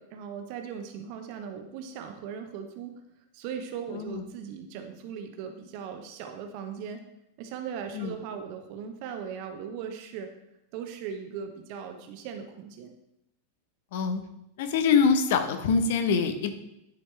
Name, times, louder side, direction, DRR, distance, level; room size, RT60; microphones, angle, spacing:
voice 1, 0.0-3.0 3.3-7.0 7.4-10.3 10.7-12.9, right 7 dB, 45° right, 5 dB, 0.9 m, -38 dB
voice 2, 3.9-4.2 7.9-8.2 13.9-14.2 14.6-16.5, left 5 dB, 55° left, 8 dB, 0.9 m, -24 dB
10.5 x 4.6 x 3.3 m, 0.82 s
figure-of-eight pair, 90°, 0 cm